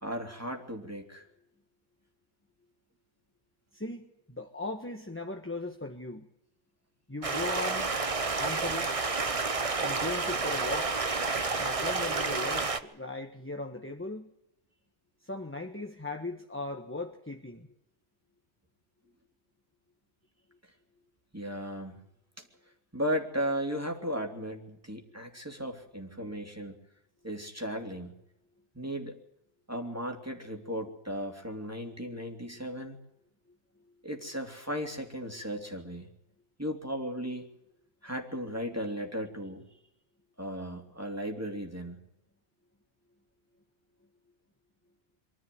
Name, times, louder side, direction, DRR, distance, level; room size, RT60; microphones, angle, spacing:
voice 1, 0.0-1.3 21.3-22.0 22.9-26.8 27.2-28.2 28.7-29.2 29.7-33.0 34.0-36.1 36.6-37.5 38.0-39.6 40.4-42.1, equal, 15° right, 3 dB, 3.2 m, -36 dB
voice 2, 3.7-6.3 7.1-7.9 8.4-8.9 9.8-11.0 11.6-14.3 15.2-17.7, left 2 dB, 10° left, 2 dB, 1.4 m, -38 dB
Stream, 7.2-12.8, right 4 dB, 30° right, 1.1 m, -30 dB
24.5 x 13.0 x 9.5 m, 0.82 s
omnidirectional pair, 1.2 m